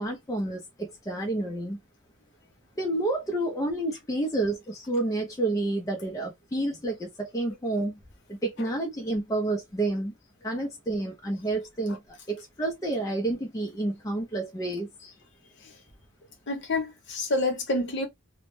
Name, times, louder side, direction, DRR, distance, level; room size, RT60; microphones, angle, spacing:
voice 1, 0.0-1.8 2.8-8.0 8.3-10.1 10.4-14.9, right 2 dB, 15° left, 0.4 m, -29 dB
voice 2, 16.5-18.1, left 2 dB, 50° left, 0.7 m, -28 dB
2.0 x 2.0 x 2.9 m
head